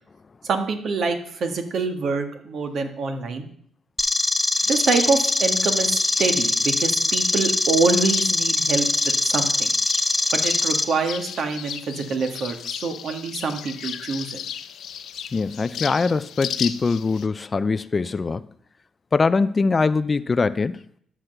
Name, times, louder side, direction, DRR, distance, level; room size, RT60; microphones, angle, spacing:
voice 1, 0.4-3.5 4.6-9.7 10.3-14.4, right 4 dB, 60° right, 6 dB, 1.7 m, -25 dB
sound 1, 4.0-10.8, left 2 dB, 15° left, 0.8 m, -22 dB
sound 2, 4.5-17.3, left 9 dB, 70° left, 0.7 m, -36 dB
voice 2, 15.3-18.4 19.1-20.8, left 4 dB, 30° left, 15 dB, 0.4 m, -22 dB
11.5 x 6.2 x 6.6 m, 0.64 s
cardioid pair, 90°, 0 cm